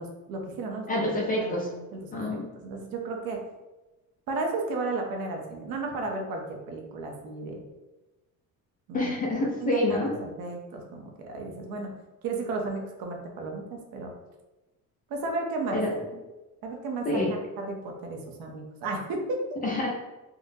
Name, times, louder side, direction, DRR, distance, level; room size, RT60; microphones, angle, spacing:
voice 1, 0.0-1.1 1.4-3.4 4.3-7.6 8.9-9.1 9.6-12.0 12.2-14.1 15.1-15.8 16.6-19.4, right 3 dB, 75° right, 2 dB, 0.7 m, -34 dB
voice 2, 0.9-1.7 2.1-2.5 8.9-10.1 15.7-15.9 17.1-17.3 19.6-19.9, left 1 dB, 25° left, -1 dB, 0.4 m, -27 dB
3.7 x 2.0 x 2.7 m, 1.1 s
cardioid pair, 165°, 36 cm